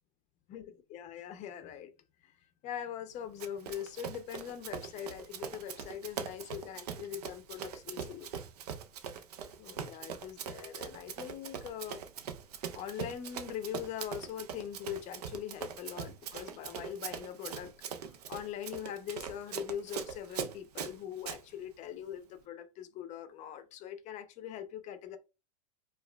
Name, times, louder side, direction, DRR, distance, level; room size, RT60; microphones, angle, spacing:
voice 1, 0.5-1.9 2.2-2.4 2.6-8.3 9.6-12.0 12.7-25.2, left 10 dB, 35° left, 0.6 m, -42 dB
Run, 3.4-21.4, right 7 dB, 75° right, 0.6 m, -42 dB
4.7 x 2.4 x 2.2 m
hypercardioid pair, 115°, 20 cm